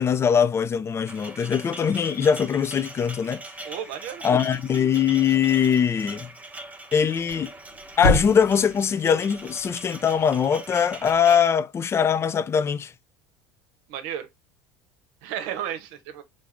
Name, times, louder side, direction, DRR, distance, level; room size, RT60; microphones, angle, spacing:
voice 1, 0.0-3.4 4.2-6.3 6.9-7.5 8.0-12.9, left 7 dB, 25° left, 0.3 m, -22 dB
sound 1, 1.1-11.5, right 2 dB, 15° right, 0.6 m, -42 dB
voice 2, 3.6-4.2 13.9-14.3 15.2-16.2, right 10 dB, 70° right, 0.8 m, -33 dB
Thump thud, 7.1-11.2, left 2 dB, 80° left, 0.9 m, -30 dB
3.6 x 2.5 x 3.3 m
hypercardioid pair, 80°, 10 cm